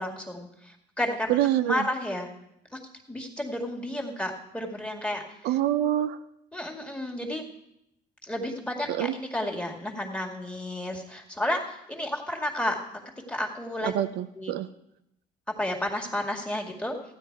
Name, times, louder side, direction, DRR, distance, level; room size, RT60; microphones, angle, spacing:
voice 1, 0.0-2.3 2.7-2.8 3.1-5.2 6.5-7.4 8.2-12.8 13.3-13.9 14.3-14.5 15.6-17.0, left 1 dB, 5° left, 1 dB, 2.1 m, -32 dB
voice 2, 1.3-1.8 5.4-6.2 8.9-9.1 13.8-14.7, right 12 dB, 80° right, 11 dB, 0.6 m, -26 dB
15.0 x 9.2 x 4.7 m, 0.81 s
cardioid pair, 110°, 17 cm